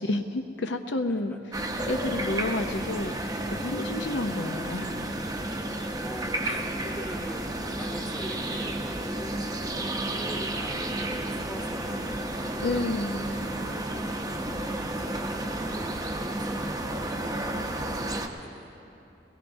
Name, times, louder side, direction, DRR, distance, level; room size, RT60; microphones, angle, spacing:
voice 1, 0.0-1.4 1.9-3.2 3.5-4.9 6.4-6.7 12.6-13.3, left 2 dB, 70° left, 6 dB, 0.6 m, -30 dB
voice 2, 1.1-1.4 6.0-18.9, equal, 10° left, 1 dB, 0.9 m, -45 dB
sound 1, 1.5-18.3, right 1 dB, 20° right, 0.7 m, -32 dB
21.5 x 19.0 x 2.7 m, 2.9 s
head